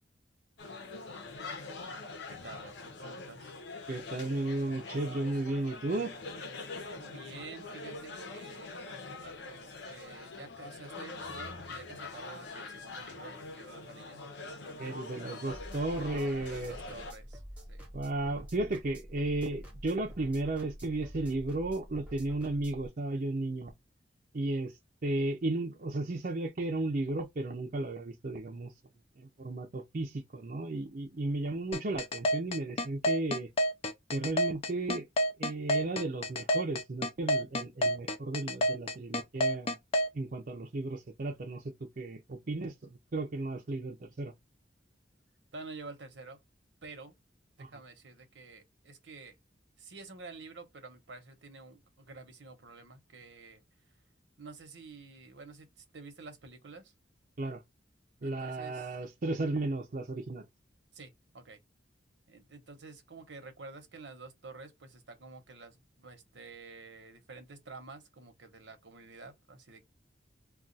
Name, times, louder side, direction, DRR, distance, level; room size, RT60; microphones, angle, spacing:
sound 1, 0.6-17.1, left 3 dB, 70° left, 0.7 m, -44 dB
voice 1, 1.4-2.0 2.3-3.5 6.9-14.2 14.6-15.1 16.4-17.4 17.7-17.9 42.4-42.7 45.5-46.4 46.8-47.1 47.6-49.4 49.8-53.6 54.4-55.7 55.9-56.9 58.2-58.9 60.9-61.6 62.3-69.8, right 3 dB, 80° right, 1.0 m, -49 dB
voice 2, 3.9-6.2 14.8-16.7 17.9-23.7 24.3-24.7 25.0-28.7 29.2-33.5 34.1-35.1 35.4-39.8 40.1-44.3 47.6-47.7 57.4-57.6 58.2-60.4, right 2 dB, 50° right, 0.6 m, -34 dB
sound 2, 15.5-22.9, equal, 5° right, 0.8 m, -47 dB
sound 3, 31.7-40.1, equal, 35° left, 0.5 m, -28 dB
2.4 x 2.3 x 3.9 m
head